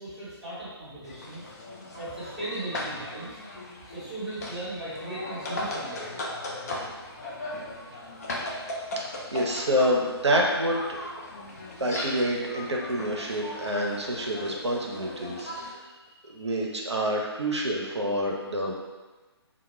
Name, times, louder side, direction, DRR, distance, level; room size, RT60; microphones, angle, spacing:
voice 1, 0.0-1.4 1.9-3.4 3.8-6.1 8.5-8.6, right 2 dB, ahead, -15 dB, 0.9 m, -37 dB
sound 1, 1.0-15.7, left 1 dB, 35° left, 0.4 m, -37 dB
voice 2, 9.3-11.0 11.8-15.8 16.3-18.7, equal, 85° right, -1 dB, 0.6 m, -27 dB
2.1 x 2.1 x 3.0 m, 1.2 s
figure-of-eight pair, 140°, 14 cm